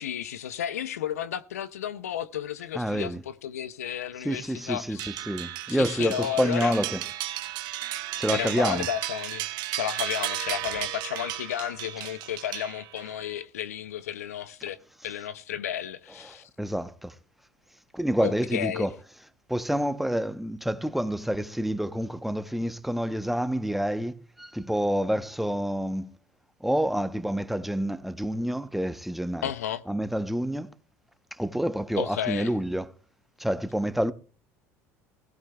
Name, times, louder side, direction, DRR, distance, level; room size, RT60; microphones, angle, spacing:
voice 1, 0.0-5.1 5.7-6.8 8.3-9.5 9.7-16.5 18.2-18.9 29.4-29.8 32.0-32.5, left 10 dB, 90° left, 0.5 m, -33 dB
voice 2, 2.7-3.2 4.2-7.0 8.2-8.9 16.3-17.1 17.9-18.9 19.5-26.1 26.6-29.5 29.9-30.7 31.4-32.9 33.4-34.1, equal, ahead, 0.8 m, -28 dB
sound 1, 5.0-13.2, right 15 dB, 60° right, 0.9 m, -34 dB
17.0 x 16.0 x 2.3 m
hypercardioid pair, 75°, 8 cm